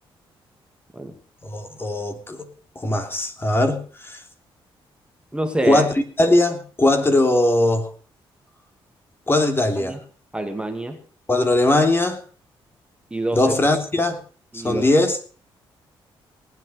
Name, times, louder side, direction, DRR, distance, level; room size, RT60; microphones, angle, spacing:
voice 1, 1.4-2.5 2.7-4.2 5.6-5.9 6.2-7.9 9.3-10.0 11.3-12.2 13.3-14.2 14.5-15.2, left 2 dB, 25° left, 3.2 m, -20 dB
voice 2, 5.3-5.8 9.8-10.0 10.3-11.0 13.1-13.5 14.5-14.9, right 2 dB, 10° right, 2.4 m, -26 dB
19.0 x 9.1 x 6.8 m
cardioid pair, 80°, 10 cm